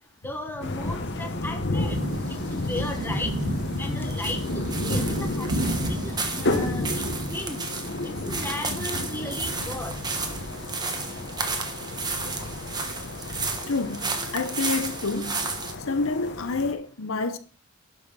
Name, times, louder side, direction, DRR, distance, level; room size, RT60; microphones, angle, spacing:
voice 1, 0.2-2.0 2.5-3.3 3.8-6.0 6.3-7.6 8.2-10.0, left 1 dB, 10° left, 1.2 m, -35 dB
sound 1, 0.6-16.7, left 2 dB, 50° left, 1.3 m, -32 dB
sound 2, 1.8-12.6, right 1 dB, 85° right, 2.0 m, -34 dB
sound 3, 2.0-15.7, right 4 dB, 20° right, 1.3 m, -33 dB
voice 2, 13.7-15.5 15.9-17.4, left 3 dB, 70° left, 0.8 m, -28 dB
11.0 x 5.6 x 5.6 m
head